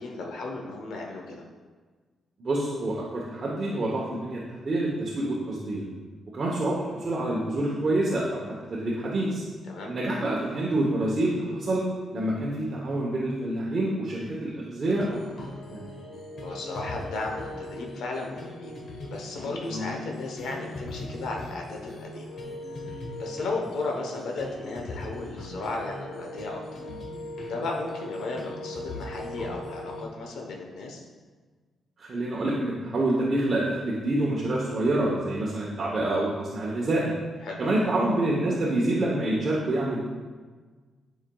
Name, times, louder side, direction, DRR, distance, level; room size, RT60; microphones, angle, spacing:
voice 1, 0.0-1.4 9.7-9.9 16.4-18.7 19.0-22.3 23.2-26.6 27.4-31.0 37.4-37.6, left 3 dB, 80° left, 0 dB, 0.9 m, -35 dB
voice 2, 2.4-5.8 6.3-8.4 8.7-9.4 9.9-11.8 12.1-15.2 15.7-15.9 19.7-19.9 32.0-37.1 37.6-40.1, right 1 dB, 35° right, -4 dB, 0.9 m, -27 dB
sound 1, 14.9-30.0, left 1 dB, 50° left, 1.1 m, -39 dB
10.5 x 4.9 x 2.3 m, 1.4 s
cardioid pair, 150°, 0 cm